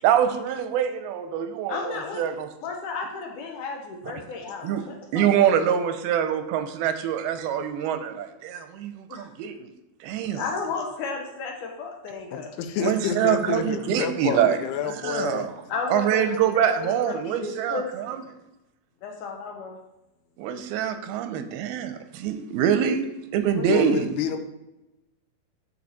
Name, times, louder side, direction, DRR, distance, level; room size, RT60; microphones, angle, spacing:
voice 1, 0.0-2.5 4.6-4.9 5.1-9.7 10.0-10.5 12.8-14.6 14.9-15.5 15.9-18.2 20.4-24.1, right 9 dB, 85° right, 8 dB, 2.6 m, -25 dB
voice 2, 1.7-2.2 2.6-5.5 9.1-9.3 10.3-12.5 15.7-17.9 19.0-19.8 23.5-23.7, left 4 dB, 70° left, 1 dB, 2.1 m, -33 dB
voice 3, 12.3-15.5 23.6-24.4, left 7 dB, 85° left, 8 dB, 2.8 m, -29 dB
13.0 x 4.6 x 4.1 m, 0.94 s
omnidirectional pair, 4.5 m